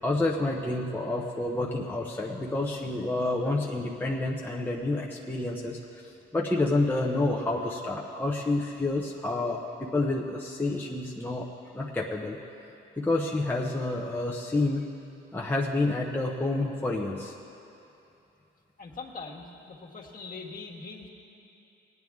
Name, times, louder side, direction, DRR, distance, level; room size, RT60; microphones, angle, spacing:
voice 1, 0.0-5.8 6.3-11.5 11.7-12.4 13.0-14.8 15.3-17.3, left 2 dB, 10° left, -2 dB, 0.8 m, -29 dB
voice 2, 18.8-21.1, left 4 dB, 45° left, -1 dB, 1.6 m, -42 dB
18.0 x 9.4 x 3.6 m, 2.8 s
cardioid pair, 90°, 20 cm